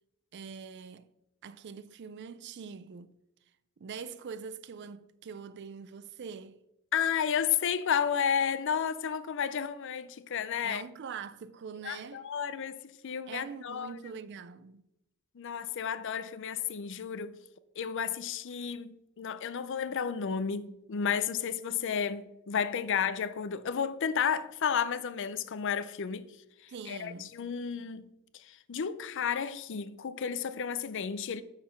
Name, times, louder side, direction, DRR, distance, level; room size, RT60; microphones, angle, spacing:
voice 1, 0.3-1.1 1.4-3.1 3.8-6.6 10.6-12.2 13.3-14.9 26.7-27.3, right 6 dB, 50° right, 0.4 m, -43 dB
voice 2, 6.9-10.8 11.8-13.9 15.3-17.4 17.8-26.3 26.6-31.4, left 7 dB, 55° left, 0.5 m, -32 dB
6.4 x 5.6 x 5.8 m
head